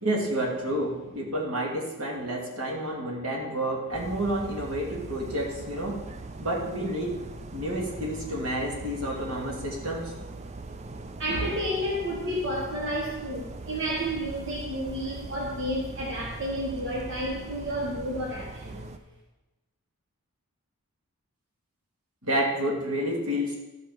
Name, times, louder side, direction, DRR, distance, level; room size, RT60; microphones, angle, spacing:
voice 1, 0.0-6.0 6.4-7.2 7.5-10.1 22.2-23.5, right 1 dB, 80° right, -1 dB, 2.3 m, -30 dB
sound 1, 3.9-19.0, right 3 dB, 30° right, 0.5 m, -41 dB
voice 2, 11.2-18.9, equal, 55° right, -2 dB, 1.4 m, -31 dB
12.5 x 5.9 x 4.8 m, 1.0 s
head